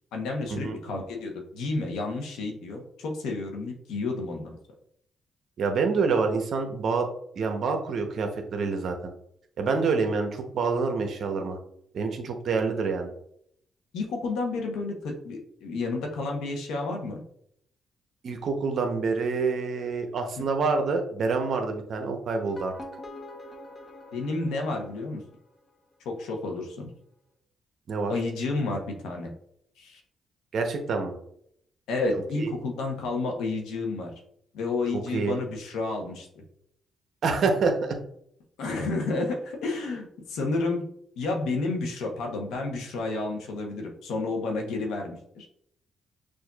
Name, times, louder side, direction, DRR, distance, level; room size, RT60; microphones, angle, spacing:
voice 1, 0.1-4.6 13.9-17.2 24.1-25.2 26.0-26.9 28.1-29.3 29.8-30.0 31.9-34.1 34.5-36.4 38.6-40.9 41.2-45.5, left 3 dB, 85° left, 2 dB, 0.9 m, -31 dB
voice 2, 5.6-7.1 7.3-8.9 9.6-11.6 11.9-13.1 18.2-22.7 27.9-28.1 30.5-31.1 32.4-32.5 35.1-35.4 37.2-38.0, right 4 dB, 65° right, 4 dB, 0.8 m, -27 dB
sound 1, 22.3-25.5, left 1 dB, 40° left, 0.9 m, -44 dB
6.2 x 2.6 x 2.3 m, 0.71 s
cardioid pair, 80°, 0 cm